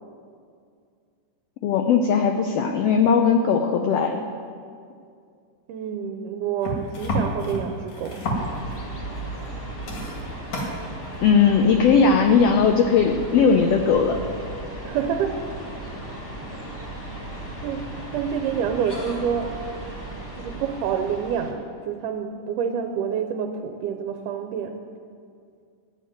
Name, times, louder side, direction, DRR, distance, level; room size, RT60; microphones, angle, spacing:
voice 1, 1.6-4.2 11.2-14.2, left 6 dB, 85° left, 4 dB, 1.3 m, -18 dB
voice 2, 5.7-8.4 14.8-15.4 16.5-16.7 17.6-17.9 18.1-19.5 20.4-24.7, right 7 dB, 85° right, 5 dB, 2.2 m, -28 dB
sound 1, 6.6-8.9 9.3-9.5 9.8-10.7 11.8-11.9, equal, 70° left, 3.3 m, -29 dB
sound 2, 8.3-21.5, right 1 dB, 20° left, 1.7 m, -36 dB
13.0 x 6.6 x 9.2 m, 2.3 s
omnidirectional pair, 3.6 m